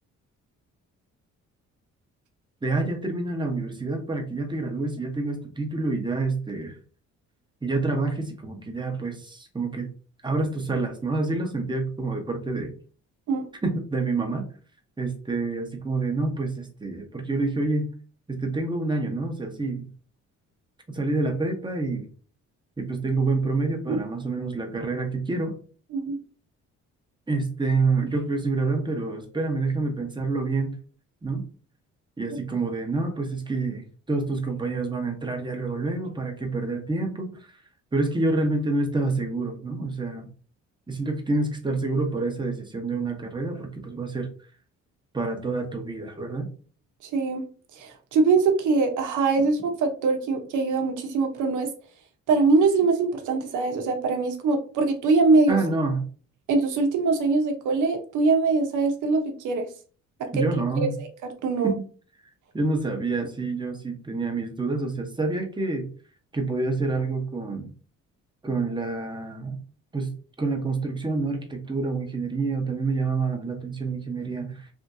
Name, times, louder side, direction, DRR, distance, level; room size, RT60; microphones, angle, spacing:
voice 1, 2.6-6.8 7.6-9.9 10.2-12.7 13.6-14.4 15.0-17.9 18.3-19.9 20.9-22.1 22.8-25.6 27.3-30.7 31.2-31.4 32.2-37.6 37.9-40.3 40.9-44.3 45.1-46.5 55.5-56.0 60.3-61.0 61.6-61.8 62.5-65.9 66.3-67.7 68.4-69.6 69.9-70.1 70.4-74.7, right 3 dB, 15° right, 3 dB, 0.9 m, -27 dB
voice 2, 47.0-47.5 47.7-51.7 52.3-55.6 56.5-59.7 60.2-60.3 61.4-61.7, right 4 dB, 80° right, 4 dB, 0.9 m, -22 dB
3.5 x 2.6 x 2.6 m, 0.39 s
cardioid pair, 90°, 30 cm